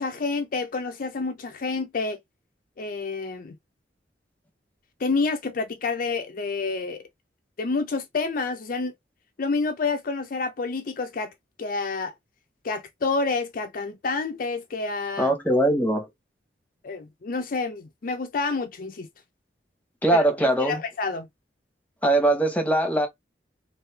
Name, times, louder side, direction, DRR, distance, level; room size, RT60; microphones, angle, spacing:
voice 1, 0.0-2.2 2.8-3.6 5.0-7.0 7.6-8.9 9.4-11.3 11.6-12.1 12.6-15.3 16.8-19.1 20.1-20.3 20.6-21.3, left 4 dB, 50° left, 0.5 m, -28 dB
voice 2, 15.2-16.1 20.0-20.8 22.0-23.1, right 1 dB, 10° left, 0.9 m, -21 dB
3.2 x 2.6 x 3.2 m
head